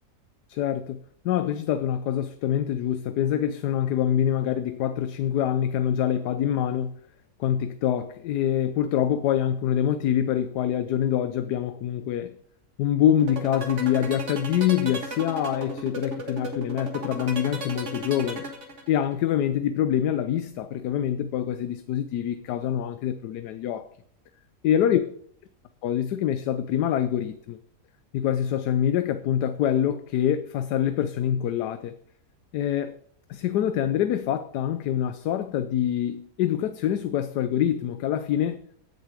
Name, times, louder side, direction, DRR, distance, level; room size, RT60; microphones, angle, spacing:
voice 1, 0.5-1.0 1.2-7.0 7.4-12.4 12.8-18.4 18.9-23.9 24.6-25.0 25.8-27.6 28.1-32.0 32.5-33.0 33.3-38.6, left 10 dB, 80° left, 1.2 m, -25 dB
sound 1, 13.2-19.1, right 2 dB, 45° right, 1.8 m, -34 dB
15.5 x 6.8 x 5.0 m
omnidirectional pair, 1.7 m